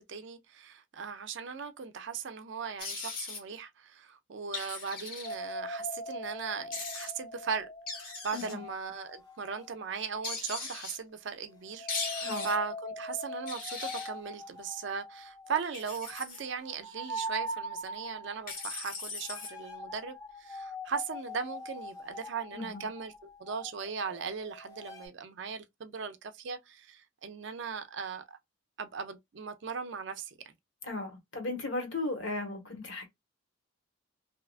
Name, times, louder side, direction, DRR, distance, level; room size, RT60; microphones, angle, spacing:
voice 1, 0.0-7.7 7.9-23.1 23.4-28.4 28.8-30.4, right 6 dB, 55° right, 0.4 m, -38 dB
sound 1, 2.8-3.4 4.5-5.3 6.7-7.1 7.9-8.5 10.2-11.0 11.9-12.6 13.5-14.1 15.6-16.4 18.5-19.5, left 4 dB, 40° left, 0.9 m, -39 dB
sound 2, 5.2-9.9 11.7-25.1, equal, 20° left, 0.5 m, -42 dB
voice 2, 8.3-8.6 12.2-12.5 22.5-22.9 30.8-33.1, left 2 dB, 60° left, 1.1 m, -36 dB
2.8 x 2.2 x 2.4 m
head